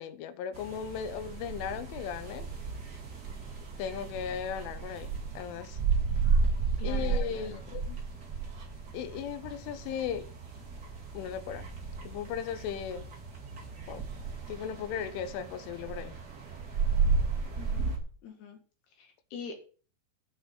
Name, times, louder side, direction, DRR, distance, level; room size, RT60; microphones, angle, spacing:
voice 1, 0.0-2.5 3.8-5.8 6.8-8.0 8.9-10.3 11.1-11.7 12.1-13.1 13.9-14.1 14.5-16.2 17.8-17.9, left 8 dB, 80° left, 3.5 m, -37 dB
sound 1, 0.5-18.0, right 5 dB, 40° right, 1.5 m, -33 dB
voice 2, 6.8-7.6 17.6-17.9 18.2-18.6 18.9-19.6, left 5 dB, 65° left, 3.3 m, -44 dB
8.6 x 6.2 x 8.0 m
omnidirectional pair, 5.6 m